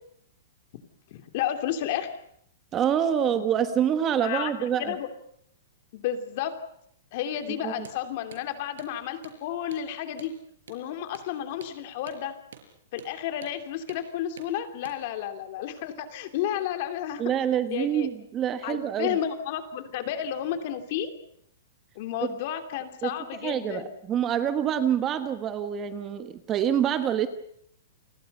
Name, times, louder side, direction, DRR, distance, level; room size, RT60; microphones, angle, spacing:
voice 1, 1.1-2.1 4.2-5.1 5.9-6.6 7.1-10.3 10.7-12.3 12.9-17.2 17.7-18.1 18.6-21.1 21.9-23.9, left 10 dB, 40° left, 8 dB, 3.0 m, -32 dB
voice 2, 2.7-4.9 7.6-7.7 17.2-19.2 23.0-23.1 23.4-27.3, right 9 dB, 15° right, 10 dB, 1.2 m, -26 dB
Hammer, 7.8-8.0 8.3-8.4 8.8-8.9 9.2-9.4 9.7-9.9 10.2-10.3 10.7-10.8 11.1-11.3 11.6-11.8 12.1-12.2 12.5-12.7 13.0-13.1 13.4-13.6 13.9-14.0 14.4-14.5 14.8-15.0, right 7 dB, 85° right, 6.0 m, -47 dB
30.0 x 24.5 x 5.5 m, 0.70 s
hypercardioid pair, 175°, 0 cm